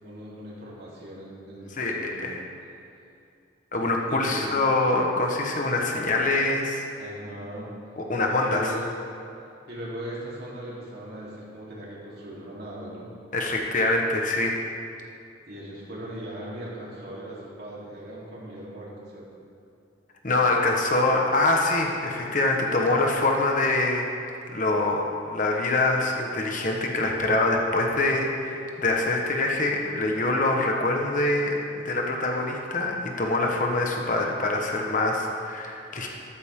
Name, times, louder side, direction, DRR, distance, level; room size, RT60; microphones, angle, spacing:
voice 1, 0.0-2.3 4.1-4.5 7.0-7.7 8.4-8.9 9.7-13.1 15.5-19.3, right 1 dB, 55° right, -6 dB, 3.6 m, -39 dB
voice 2, 1.7-2.4 3.7-7.1 8.0-8.7 13.3-14.5 20.2-24.1 24.5-36.1, left 2 dB, 40° left, 0 dB, 1.3 m, -24 dB
13.5 x 13.5 x 3.8 m, 2.5 s
head